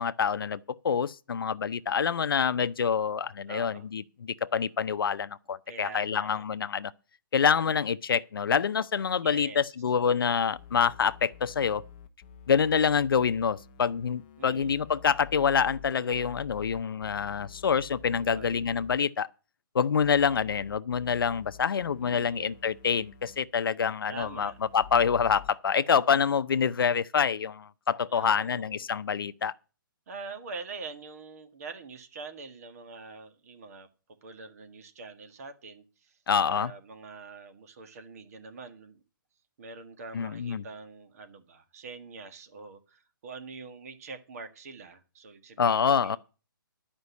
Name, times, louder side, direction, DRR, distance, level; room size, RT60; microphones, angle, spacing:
voice 1, 0.0-6.9 7.3-11.8 12.5-19.3 19.7-29.5 36.3-36.7 40.1-40.6 45.6-46.2, left 7 dB, 80° left, 0.6 m, -26 dB
voice 2, 3.5-3.9 5.7-6.5 9.2-9.6 14.4-14.9 18.2-18.6 22.0-22.6 24.1-24.6 28.1-28.9 30.1-33.9 34.2-36.2 36.5-39.0 39.6-45.8 46.0-46.2, right 4 dB, 45° right, 1.6 m, -44 dB
sound 1, 10.5-19.0 20.0-23.4 24.2-25.5, left 9 dB, 25° left, 0.9 m, -49 dB
11.5 x 5.3 x 8.2 m
hypercardioid pair, 165°, 12 cm